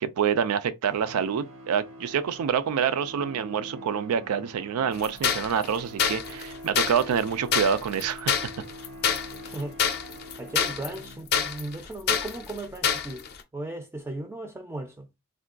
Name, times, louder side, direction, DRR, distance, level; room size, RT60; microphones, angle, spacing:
voice 1, 0.0-8.4, right 7 dB, 90° right, 0.4 m, -27 dB
sound 1, 0.8-11.6, equal, 65° right, 0.7 m, -45 dB
sound 2, 5.0-13.4, left 7 dB, 50° left, 0.5 m, -27 dB
voice 2, 9.4-10.0 10.4-13.3 13.5-15.1, right 2 dB, 10° right, 0.3 m, -36 dB
3.6 x 2.2 x 2.4 m
head